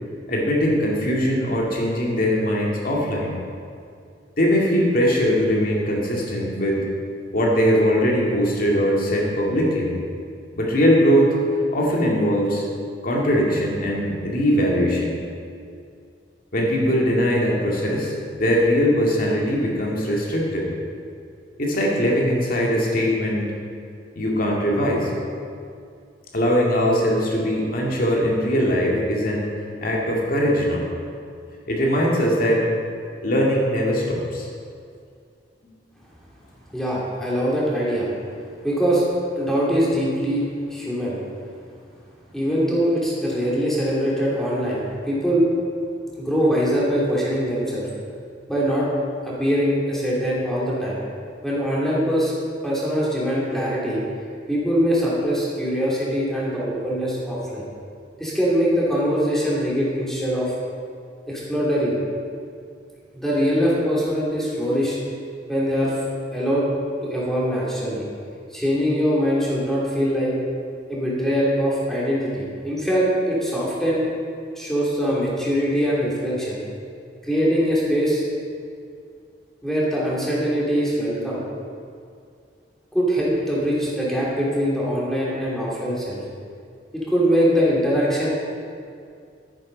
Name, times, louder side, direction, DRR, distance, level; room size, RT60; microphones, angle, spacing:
voice 1, 0.3-3.4 4.4-6.8 7.3-9.9 10.6-11.4 11.7-12.7 13.0-15.2 16.5-20.7 21.6-23.5 24.2-25.1 26.3-29.5 29.8-30.9 31.7-32.7 33.2-34.5, equal, 55° left, -2 dB, 2.3 m, -21 dB
voice 2, 36.7-38.1 38.6-39.0 39.4-41.2 42.3-45.5 46.2-47.9 48.5-48.9 49.2-51.0 51.4-52.3 52.6-54.0 54.5-57.6 58.2-60.5 61.3-62.0 63.1-65.0 65.5-65.9 66.3-66.7 67.0-68.1 68.5-70.3 70.9-74.0 74.5-76.6 77.2-78.2 79.6-81.4 82.9-86.2 86.9-88.3, equal, ahead, -6 dB, 3.0 m, -22 dB
11.5 x 9.8 x 5.3 m, 2.3 s
head